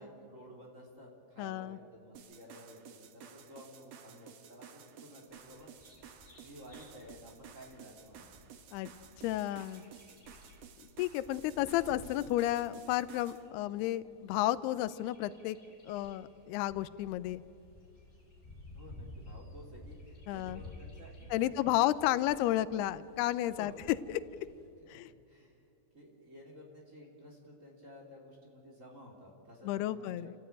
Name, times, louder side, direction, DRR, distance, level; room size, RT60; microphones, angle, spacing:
voice 1, 0.0-5.7 6.4-8.3 18.7-22.4 23.5-23.8 24.8-25.0 25.3-25.6 25.9-30.3, equal, 20° right, -1 dB, 3.3 m, -53 dB
voice 2, 1.4-1.8 8.7-8.9 9.2-9.8 11.0-15.6 15.9-17.4 20.3-20.6 21.3-23.7 24.9-25.1 29.6-30.3, left 14 dB, 90° left, 16 dB, 2.7 m, -32 dB
sound 1, 2.1-13.4, right 8 dB, 60° right, 1.7 m, -54 dB
Bird vocalization bird call bird song, 5.3-24.7, left 1 dB, 20° left, 5.5 m, -55 dB
29.0 x 15.0 x 9.1 m, 2.7 s
omnidirectional pair, 4.5 m